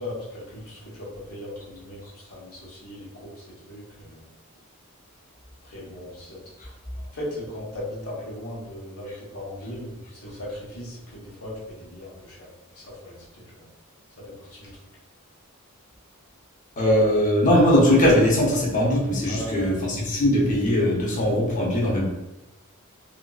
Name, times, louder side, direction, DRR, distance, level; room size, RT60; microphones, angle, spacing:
voice 1, 0.0-4.2 5.6-6.4 7.1-12.5 12.7-13.7 14.2-14.7 19.3-19.7, left 1 dB, 75° left, -6 dB, 1.1 m, -38 dB
voice 2, 16.8-22.1, left 1 dB, 35° left, -3 dB, 0.8 m, -20 dB
2.9 x 2.5 x 2.3 m, 1.0 s
head